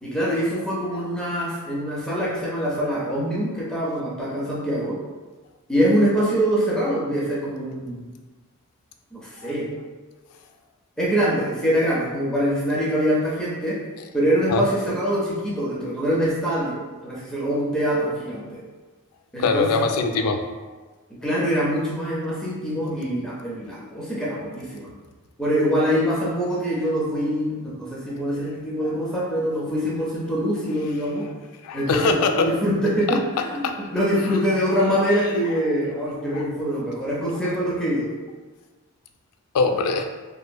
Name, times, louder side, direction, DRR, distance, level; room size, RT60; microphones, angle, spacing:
voice 1, 0.0-5.0 5.7-8.1 9.1-9.7 11.0-13.8 14.1-18.6 19.3-19.7 20.2-20.3 21.1-24.9 25.4-31.3 31.7-38.1, equal, 5° left, -7 dB, 0.5 m, -24 dB
voice 2, 19.4-20.4 20.7-20.8 23.6-23.9 28.2-28.6 31.2-31.4 31.6-32.5 33.1-33.2 33.6-33.9 34.2-34.4 34.7-35.4 36.3-36.5 39.5-40.1, left 4 dB, 90° left, 6 dB, 0.3 m, -25 dB
2.8 x 2.5 x 2.2 m, 1.3 s
head